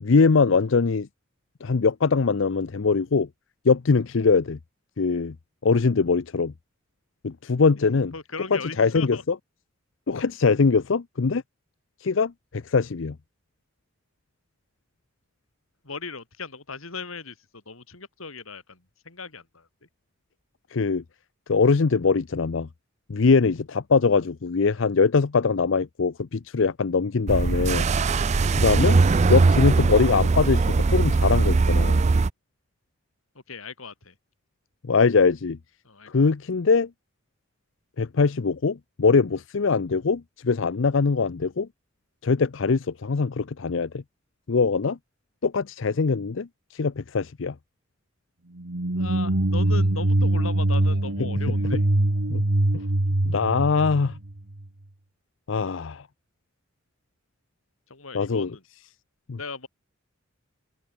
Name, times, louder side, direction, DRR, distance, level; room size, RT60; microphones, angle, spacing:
voice 1, 0.0-1.1 1.6-3.3 3.6-4.6 5.0-5.3 5.6-6.5 7.2-8.1 8.5-9.4 10.1-11.4 12.0-13.2 20.7-21.0 21.5-22.7 23.1-27.9 28.6-29.0 29.3-32.0 34.8-35.6 36.1-36.9 38.0-41.7 42.2-44.0 44.5-45.0 45.4-47.6 52.3-52.4 53.2-54.2 55.5-56.1 58.1-58.6 59.3-59.4, left 4 dB, 65° left, 0.6 m, -22 dB
voice 2, 8.1-9.2 15.8-18.8 19.1-19.7 33.5-34.1 35.8-36.3 49.0-51.8 57.9-58.6 59.4-59.7, left 4 dB, 85° left, 3.5 m, -37 dB
sound 1, 27.3-32.3, right 3 dB, 35° right, 0.4 m, -20 dB
sound 2, 48.6-54.6, right 1 dB, 80° right, 1.8 m, -23 dB
open air
head